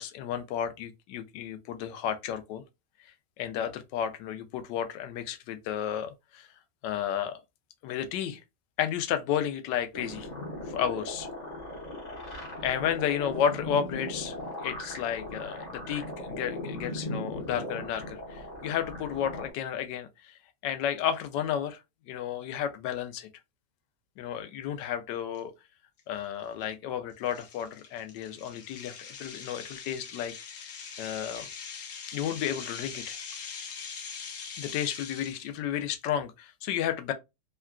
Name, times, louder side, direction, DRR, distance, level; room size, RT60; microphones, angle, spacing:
voice 1, 0.0-2.6 3.4-6.5 6.8-7.4 7.8-8.4 8.8-10.3 10.7-11.3 12.6-14.4 14.6-21.8 22.1-23.3 24.2-25.5 26.1-30.7 31.0-31.5 32.1-33.2 34.6-37.1, left 9 dB, 90° left, 1.2 m, -32 dB
sound 1, 9.9-19.5, left 1 dB, 40° left, 0.6 m, -38 dB
sound 2, 25.3-25.4 26.0-26.2 26.6-26.7 27.3-35.6, left 6 dB, 60° left, 0.9 m, -42 dB
3.6 x 2.2 x 2.4 m
omnidirectional pair, 1.8 m